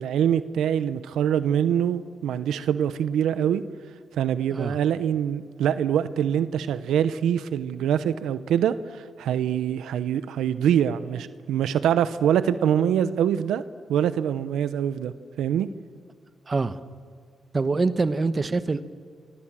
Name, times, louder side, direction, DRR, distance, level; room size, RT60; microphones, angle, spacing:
voice 1, 0.0-3.6 4.2-13.6 13.9-15.7, right 9 dB, 90° right, 14 dB, 0.8 m, -24 dB
voice 2, 16.5-16.8 17.5-18.8, right 3 dB, 35° right, 13 dB, 1.0 m, -25 dB
28.0 x 24.0 x 7.5 m, 2.1 s
cardioid pair, 75°, 0 cm